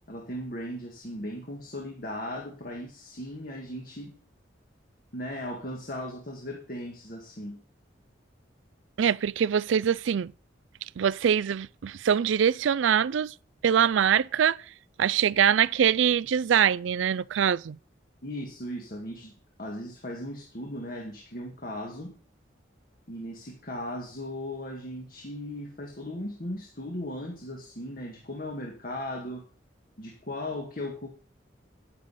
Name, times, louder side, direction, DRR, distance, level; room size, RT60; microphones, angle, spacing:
voice 1, 0.1-4.2 5.1-7.6 18.2-19.3 19.6-22.1 23.1-29.4 30.0-31.1, left 1 dB, 50° left, 1.9 m, -37 dB
voice 2, 9.0-10.3 11.0-13.3 13.6-14.6 15.0-17.8, right 8 dB, 80° right, 0.4 m, -23 dB
11.0 x 9.2 x 4.2 m
head